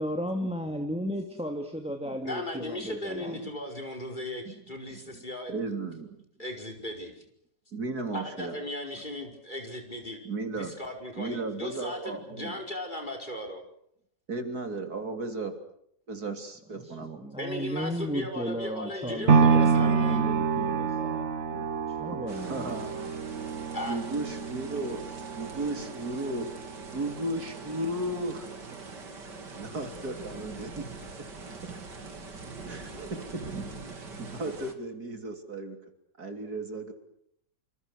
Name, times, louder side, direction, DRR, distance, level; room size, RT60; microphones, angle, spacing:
voice 1, 0.0-3.4 16.8-22.7, equal, 5° right, 4 dB, 2.4 m, -35 dB
voice 2, 2.2-5.5 6.4-7.1 8.1-10.2 10.6-13.6 17.4-20.2 23.7-24.0, left 1 dB, 25° left, 3 dB, 5.4 m, -37 dB
voice 3, 5.5-6.2 7.7-8.6 10.2-10.7 11.2-12.6 14.3-15.6 16.1-17.2 21.5-21.6 22.1-22.9 23.9-26.5 26.9-28.5 29.2-30.9 31.5-32.0 32.7-33.5 33.9-35.8 36.2-36.9, right 2 dB, 65° right, 6 dB, 3.8 m, -35 dB
sound 1, 19.3-27.4 27.9-28.0, right 5 dB, 45° right, 1.6 m, -27 dB
sound 2, 22.3-34.7, right 3 dB, 85° right, 3.4 m, -43 dB
29.0 x 26.5 x 6.5 m, 0.71 s
omnidirectional pair, 1.8 m